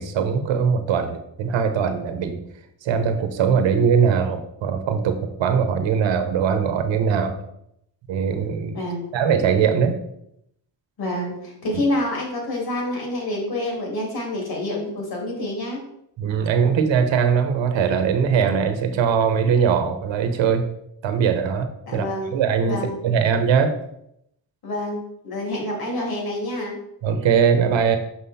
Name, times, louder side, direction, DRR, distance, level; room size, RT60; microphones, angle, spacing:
voice 1, 0.0-2.4 2.8-7.3 8.1-8.8 9.1-10.0 16.2-20.6 21.0-22.1 22.3-23.7 27.0-28.0, right 6 dB, 80° right, 7 dB, 1.0 m, -21 dB
voice 2, 8.7-9.1 11.0-15.8 21.9-22.3 22.7-23.0 24.6-26.8, left 1 dB, 55° left, -1 dB, 2.8 m, -27 dB
6.2 x 5.6 x 4.2 m, 0.76 s
cardioid pair, 110°, 44 cm